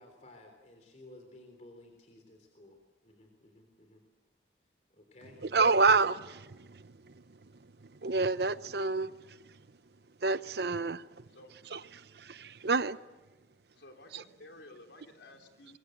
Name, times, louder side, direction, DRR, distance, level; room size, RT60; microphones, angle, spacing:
voice 1, 0.0-4.0 4.9-5.8, left 1 dB, 40° left, 3.6 m, -55 dB
voice 2, 5.4-9.7 10.2-11.3 11.7-13.0 14.1-14.2, right 4 dB, 65° right, 0.8 m, -30 dB
voice 3, 13.7-15.8, left 1 dB, 80° left, 3.6 m, -53 dB
25.5 x 22.5 x 7.9 m
head